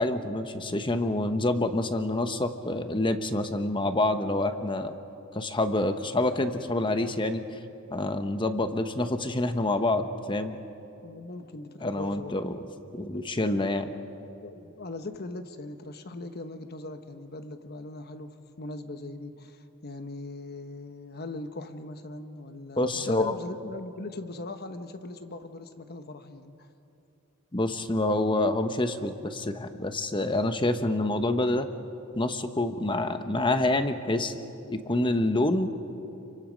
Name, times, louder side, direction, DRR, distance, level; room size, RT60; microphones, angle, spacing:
voice 1, 0.0-4.9 5.3-7.4 7.9-10.6 11.8-12.6 12.9-13.9 22.8-23.3 27.5-31.7 32.2-34.3 34.7-35.9, left 2 dB, 25° left, 8 dB, 1.1 m, -27 dB
voice 2, 11.0-12.4 14.4-26.7, left 2 dB, 50° left, 8 dB, 1.2 m, -40 dB
29.5 x 24.0 x 5.3 m, 2.8 s
head